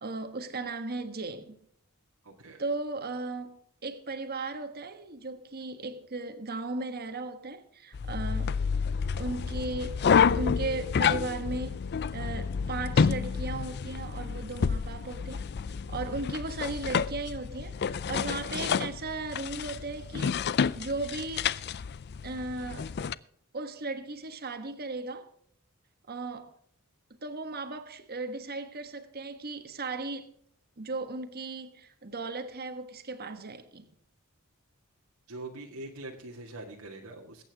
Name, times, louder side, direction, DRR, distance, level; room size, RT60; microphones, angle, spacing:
voice 1, 0.0-1.6 2.6-8.6 9.2-10.0 10.4-11.8 12.1-15.4 15.9-21.5 22.2-22.9 23.5-25.3 26.1-26.5 27.2-30.3 30.8-33.9, right 3 dB, 45° right, 1.4 m, -36 dB
voice 2, 2.2-2.6 35.3-37.4, right 2 dB, 80° right, 1.9 m, -43 dB
sound 1, 7.9-23.1, left 6 dB, 50° left, 0.4 m, -29 dB
22.0 x 8.9 x 3.5 m
head